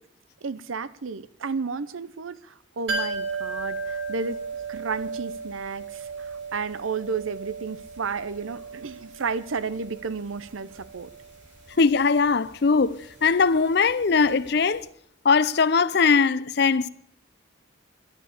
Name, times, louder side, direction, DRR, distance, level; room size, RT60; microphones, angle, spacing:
voice 1, 0.4-4.4 4.7-11.1, right 5 dB, 85° right, 0.7 m, -32 dB
sound 1, 2.9-14.5 14.7-14.8, right 4 dB, 65° right, 7.0 m, -36 dB
voice 2, 11.8-14.9 15.2-16.9, left 5 dB, 55° left, 0.5 m, -20 dB
12.0 x 9.8 x 8.4 m
head